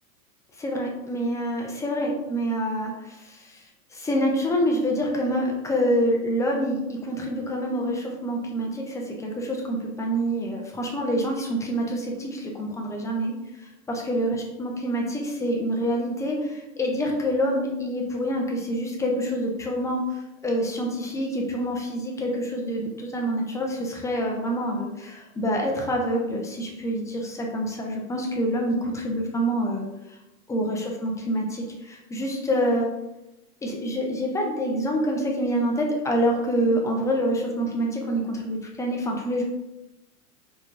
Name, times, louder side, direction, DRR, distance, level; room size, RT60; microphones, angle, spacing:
voice 1, 0.6-3.6 3.9-29.9 30.5-32.9 33.6-39.4, equal, 5° left, 0 dB, 0.4 m, -26 dB
4.2 x 3.3 x 2.5 m, 0.96 s
hypercardioid pair, 100°, 43 cm